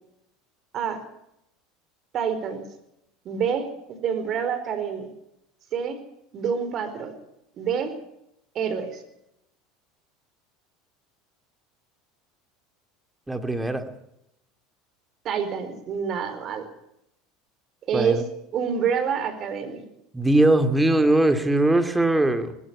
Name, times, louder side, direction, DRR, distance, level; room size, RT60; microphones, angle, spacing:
voice 1, 2.1-2.6 3.2-3.7 4.0-5.1 5.7-6.0 6.3-7.1 7.6-7.9 8.5-9.0 15.2-16.6 17.9-18.2 18.5-19.8, right 7 dB, 45° right, 9 dB, 4.9 m, -27 dB
voice 2, 13.3-13.9 17.9-18.2 20.1-22.6, right 1 dB, 10° right, 8 dB, 2.8 m, -20 dB
19.5 x 16.0 x 8.8 m, 0.80 s
hypercardioid pair, 80°, 0 cm